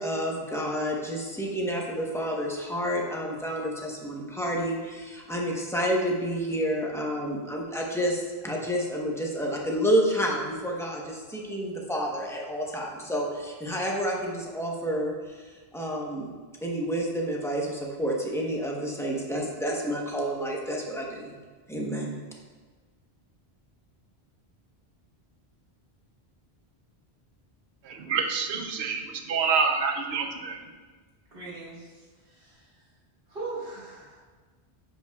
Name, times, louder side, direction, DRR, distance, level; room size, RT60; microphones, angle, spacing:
voice 1, 0.0-15.4 15.7-16.3 16.6-21.4 21.7-22.2, equal, 5° left, -2 dB, 0.9 m, -29 dB
voice 2, 27.9-30.6, right 5 dB, 80° right, 4 dB, 1.0 m, -27 dB
voice 3, 31.3-32.7 33.3-34.2, right 3 dB, 60° right, -6 dB, 1.9 m, -40 dB
10.0 x 5.5 x 2.3 m, 1.4 s
omnidirectional pair, 1.1 m